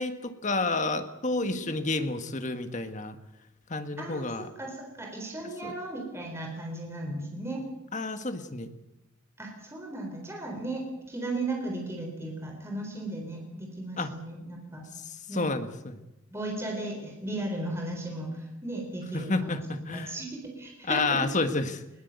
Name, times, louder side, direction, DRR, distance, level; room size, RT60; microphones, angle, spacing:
voice 1, 0.0-3.2 3.7-4.5 5.6-5.8 7.9-8.7 14.0-14.1 15.0-16.0 19.1-20.2 20.8-21.8, left 3 dB, 35° left, 8 dB, 1.6 m, -30 dB
voice 2, 4.0-7.6 9.4-14.9 15.3-15.5 16.3-19.6 19.9-21.2, right 2 dB, 15° right, 1 dB, 4.0 m, -36 dB
21.0 x 19.0 x 8.3 m, 0.95 s
head